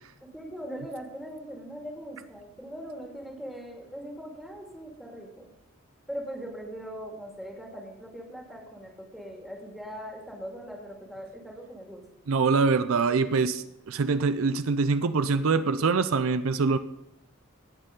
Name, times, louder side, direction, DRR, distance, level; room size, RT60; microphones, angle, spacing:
voice 1, 0.2-5.5 6.1-12.0, equal, ahead, -1 dB, 2.2 m, -40 dB
voice 2, 12.3-16.8, right 4 dB, 75° right, 12 dB, 0.5 m, -24 dB
18.0 x 6.6 x 3.8 m, 0.88 s
head